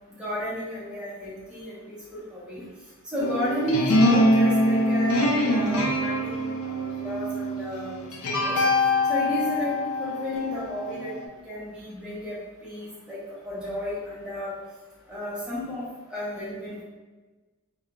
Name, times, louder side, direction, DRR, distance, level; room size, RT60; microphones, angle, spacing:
voice 1, 0.2-2.6 3.1-8.6 9.1-9.7 10.0-11.1 11.5-12.3 12.6-13.2 13.4-14.5 15.1-16.8, equal, 5° right, -9 dB, 0.7 m, -32 dB
sound 1, 3.2-11.2, left 1 dB, 75° left, 0.5 m, -24 dB
2.3 x 2.2 x 2.9 m, 1.2 s
head